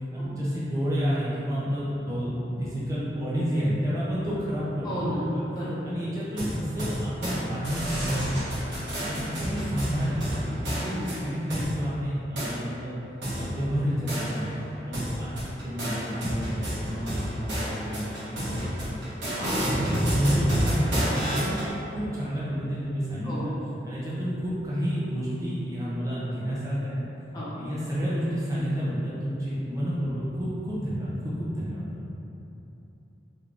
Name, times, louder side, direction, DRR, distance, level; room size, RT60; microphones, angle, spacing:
voice 1, 0.1-5.4 5.8-8.6 9.0-10.8 11.0-13.0 13.3-19.1 19.6-21.6 21.9-23.5 23.8-27.0 27.5-32.0, equal, 20° right, -9 dB, 0.5 m, -30 dB
voice 2, 4.8-5.2 5.5-5.8 10.8-11.0 19.3-19.5 23.2-23.4 27.3-27.5, equal, 20° left, -10 dB, 0.9 m, -33 dB
sound 1, 6.4-7.4 7.6-11.7 12.4-12.5 13.2-14.6 14.9-21.7, equal, 85° right, 1.1 m, -30 dB
3.4 x 3.4 x 2.4 m, 3.0 s
head